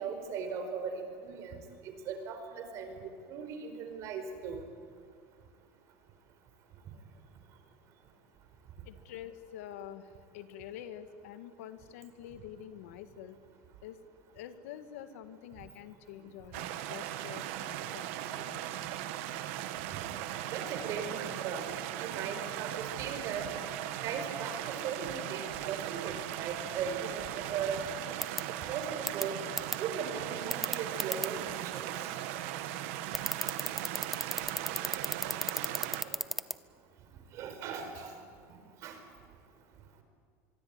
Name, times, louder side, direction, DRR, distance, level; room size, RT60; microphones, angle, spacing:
voice 1, 0.0-1.6 1.8-4.7 19.9-20.2 20.5-21.7 22.0-23.5 24.0-27.8 28.7-29.4 29.8-31.9 34.3-34.5 36.0-36.2 37.3-38.2 38.8-39.0, right 6 dB, 45° right, 7 dB, 4.8 m, -38 dB
voice 2, 8.8-13.4 13.8-14.0 14.3-18.6, left 10 dB, 90° left, 10 dB, 2.0 m, -47 dB
sound 1, 16.5-36.0, right 12 dB, 70° right, 1.7 m, -38 dB
sound 2, 28.2-28.4 29.1-29.2 29.6-29.8 30.5-31.3 33.1-36.5, equal, ahead, 0.8 m, -31 dB
24.0 x 24.0 x 9.8 m, 2.1 s
cardioid pair, 155°, 7 cm